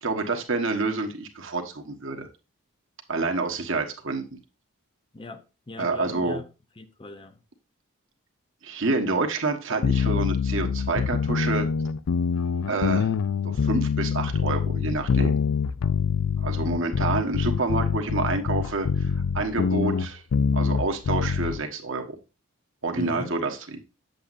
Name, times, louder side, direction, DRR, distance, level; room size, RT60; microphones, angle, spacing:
voice 1, 0.0-2.3 3.1-4.4 5.8-6.4 8.6-11.7 12.6-13.1 13.4-15.4 16.4-20.2 20.5-22.2 22.8-23.8, right 3 dB, 60° right, 1.3 m, -28 dB
voice 2, 5.1-6.5 6.8-7.4 23.0-23.4, left 2 dB, 25° left, 0.6 m, -39 dB
sound 1, 9.8-21.6, left 6 dB, 75° left, 0.4 m, -25 dB
8.3 x 7.8 x 2.5 m
head